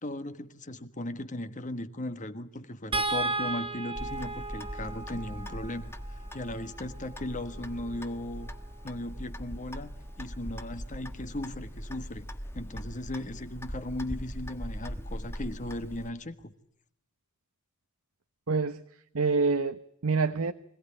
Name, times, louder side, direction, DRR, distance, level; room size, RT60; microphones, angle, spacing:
voice 1, 0.0-8.5 8.8-12.3 12.5-16.5, left 1 dB, 35° left, 1.4 m, -37 dB
sound 1, 2.9-9.2 10.8-10.9 11.3-11.5, right 2 dB, 25° right, 2.0 m, -36 dB
Clock, 4.0-16.1, equal, 10° left, 1.3 m, -41 dB
voice 2, 18.5-18.8 19.1-20.5, right 4 dB, 65° right, 1.0 m, -26 dB
25.5 x 17.5 x 10.0 m
head